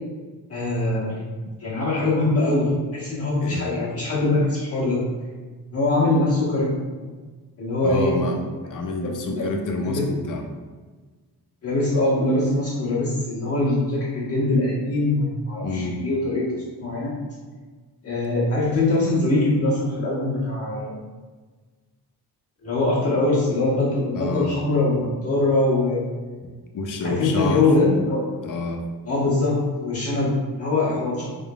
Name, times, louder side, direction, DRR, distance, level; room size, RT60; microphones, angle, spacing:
voice 1, 0.5-1.1 1.6-5.0 5.7-6.7 7.0-7.1 7.6-8.1 9.0-9.5 9.8-10.0 11.6-17.1 18.0-21.0 22.6-26.1 27.0-28.2 29.0-31.3, left 2 dB, 35° left, -8 dB, 1.3 m, -22 dB
voice 2, 7.8-10.4 15.6-16.0 24.1-24.5 26.7-27.7 28.4-28.8, left 3 dB, 50° left, 3 dB, 0.5 m, -28 dB
3.9 x 3.5 x 2.3 m, 1.4 s
wide cardioid pair, 165°, 41 cm